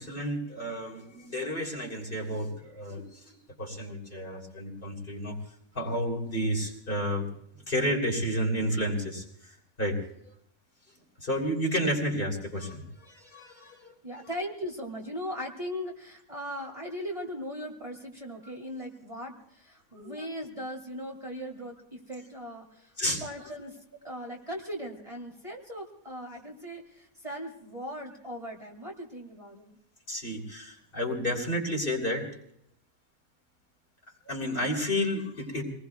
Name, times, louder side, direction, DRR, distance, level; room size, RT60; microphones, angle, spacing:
voice 1, 0.0-5.4 5.7-7.3 7.7-9.5 9.8-10.0 11.2-14.0 19.9-20.3 23.0-23.2 30.1-32.3 34.3-35.6, equal, 40° left, 1 dB, 3.4 m, -31 dB
voice 2, 14.0-22.9 23.2-29.8, equal, 25° right, 0 dB, 2.4 m, -39 dB
26.0 x 19.5 x 2.3 m, 0.70 s
omnidirectional pair, 1.4 m